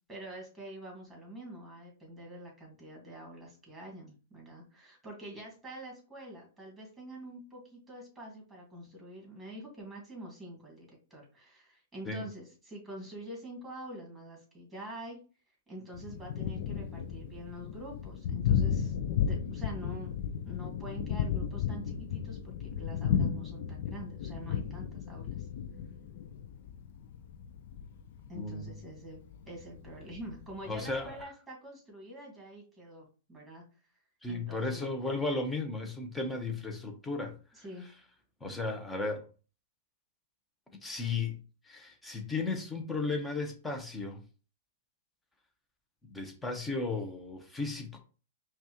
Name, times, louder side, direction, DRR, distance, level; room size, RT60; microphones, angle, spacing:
voice 1, 0.1-15.2 15.7-19.0 19.2-20.1 20.4-25.5 28.3-29.2 29.5-33.6 34.3-34.8 37.5-37.9, right 1 dB, 5° right, 2.0 m, -46 dB
Thunder, 15.9-31.2, left 8 dB, 55° left, 0.4 m, -34 dB
voice 2, 28.3-28.8 30.7-31.2 34.2-37.4 38.4-39.2 40.8-41.4 41.6-44.2 46.1-48.0, left 3 dB, 10° left, 0.9 m, -35 dB
5.3 x 2.4 x 3.0 m
hypercardioid pair, 135°, 0 cm